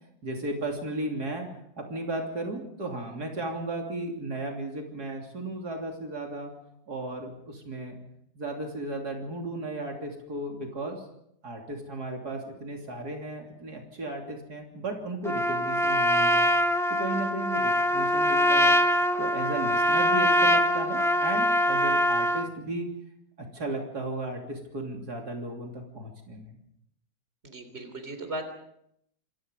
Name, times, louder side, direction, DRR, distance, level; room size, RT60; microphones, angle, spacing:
voice 1, 0.2-1.5 1.8-6.5 6.9-8.0 8.4-11.0 11.4-16.5 17.0-18.8 19.2-22.9 23.4-26.6, right 2 dB, 75° right, 1 dB, 3.7 m, -35 dB
Trumpet, 15.2-22.5, equal, ahead, 0.7 m, -23 dB
voice 2, 27.4-28.5, right 1 dB, 40° right, 7 dB, 3.8 m, -37 dB
27.0 x 23.0 x 5.3 m, 0.76 s
omnidirectional pair, 1.7 m